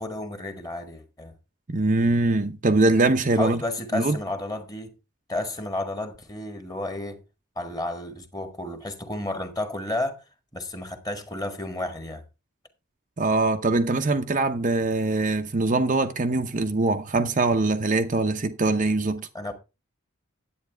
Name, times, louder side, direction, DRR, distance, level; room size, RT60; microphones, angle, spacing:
voice 1, 0.0-1.3 3.4-4.9 5.3-7.2 7.5-10.2 10.5-12.2 19.3-19.5, left 1 dB, 15° left, 1.6 m, -32 dB
voice 2, 1.7-3.6 3.9-4.2 13.2-19.3, right 2 dB, 35° right, 0.7 m, -22 dB
10.5 x 8.6 x 3.4 m
head